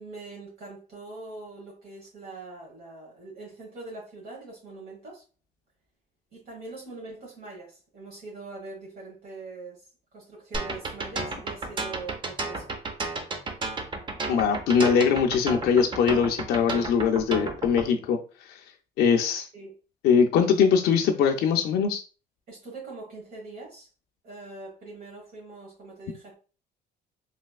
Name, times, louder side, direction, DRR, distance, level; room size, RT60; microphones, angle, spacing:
voice 1, 0.0-5.2 6.3-9.9 10.1-12.7 19.5-19.7 22.5-23.9 24.2-26.3, right 3 dB, 60° right, -4 dB, 1.3 m, -42 dB
sound 1, 10.5-17.9, right 3 dB, 30° right, 0.6 m, -32 dB
voice 2, 14.3-18.2 19.0-19.5 20.0-22.0, left 6 dB, 70° left, 2 dB, 0.5 m, -22 dB
3.2 x 2.7 x 2.3 m, 0.35 s
cardioid pair, 110°, 17 cm